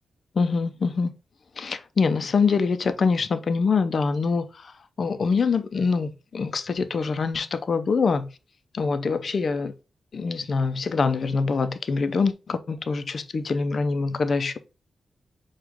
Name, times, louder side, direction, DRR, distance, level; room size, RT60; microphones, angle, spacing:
voice 1, 0.4-1.1 1.6-8.3 8.7-9.7 10.1-14.6, left 4 dB, 55° left, 0.5 m, -24 dB
6.2 x 2.4 x 3.5 m
cardioid pair, 75°, 0 cm